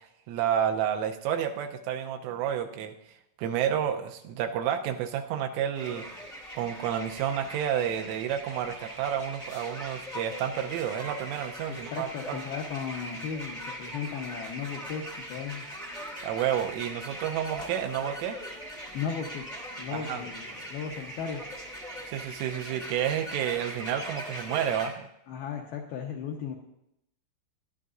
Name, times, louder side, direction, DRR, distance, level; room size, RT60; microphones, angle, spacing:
voice 1, 0.0-3.0 3.4-6.1 6.6-12.4 16.2-18.4 19.9-20.2 22.1-25.1, right 9 dB, 85° right, 5 dB, 3.1 m, -30 dB
sound 1, 5.7-24.9, right 1 dB, 70° left, 0.4 m, -41 dB
voice 2, 11.7-15.6 18.9-21.5 25.3-26.5, left 7 dB, 85° left, 1 dB, 2.2 m, -36 dB
20.5 x 12.0 x 2.5 m, 0.80 s
omnidirectional pair, 5.9 m